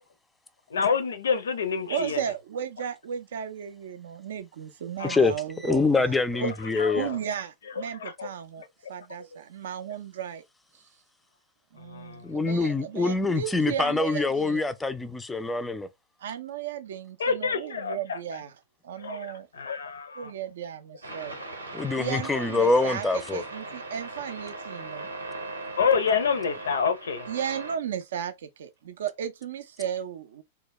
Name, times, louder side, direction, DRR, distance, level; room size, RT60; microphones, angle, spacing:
voice 1, 0.7-2.2 5.0-5.2 6.3-7.2 8.0-8.3 8.8-8.9 9.3-9.4 11.8-12.3 17.2-18.2 19.0-20.3 25.8-27.3, left 6 dB, 70° left, 0.5 m, -28 dB
voice 2, 1.9-6.1 6.4-6.5 6.9-8.6 8.9-10.4 10.7-10.8 11.7-14.7 16.2-18.5 18.8-19.5 20.2-21.4 21.6-25.1 27.3-28.3 28.6-30.4, right 9 dB, 65° right, 0.3 m, -35 dB
voice 3, 5.6-7.1 12.2-15.9 21.7-23.4, left 3 dB, 10° left, 0.3 m, -25 dB
sound 1, 21.0-27.7, right 2 dB, 85° right, 0.7 m, -39 dB
2.2 x 2.2 x 3.0 m
figure-of-eight pair, 100°, 0 cm